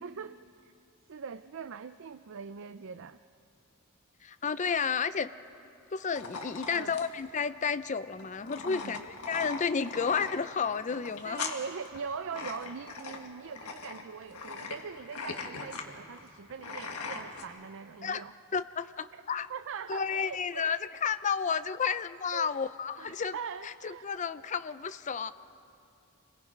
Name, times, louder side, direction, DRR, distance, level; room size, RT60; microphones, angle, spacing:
voice 1, 0.0-0.7 1.1-3.2 6.7-7.0 8.6-9.0 11.2-18.3 19.1-19.2 19.5-20.7 22.3-22.6 23.0-24.1, right 6 dB, 60° right, 11 dB, 0.5 m, -42 dB
voice 2, 4.2-5.3 5.9-11.5 18.0-18.2 18.5-19.5 19.9-23.3 23.6-25.3, left 6 dB, 35° left, 13 dB, 0.5 m, -32 dB
sound 1, 6.1-17.4, left 4 dB, 90° left, 1.7 m, -41 dB
28.5 x 22.0 x 5.3 m, 2.6 s
head